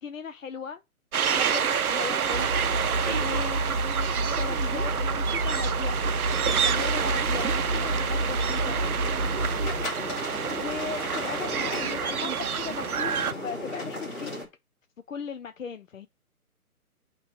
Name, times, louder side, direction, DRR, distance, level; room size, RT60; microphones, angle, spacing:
voice 1, 0.0-0.8 1.3-2.5 3.2-3.7 4.4-6.0 6.6-8.8 10.6-14.3 15.1-16.1, left 6 dB, 60° left, 0.5 m, -37 dB
sound 1, 1.1-13.3, right 7 dB, 75° right, 0.6 m, -28 dB
sound 2, 2.3-9.9, right 1 dB, 35° right, 1.1 m, -29 dB
voice 2, 2.9-3.5 6.4-6.6 9.3-9.8, right 3 dB, 15° right, 0.9 m, -36 dB
sound 3, 6.4-14.4, left 1 dB, 15° left, 1.8 m, -36 dB
8.5 x 3.1 x 4.9 m
figure-of-eight pair, 140°, 44 cm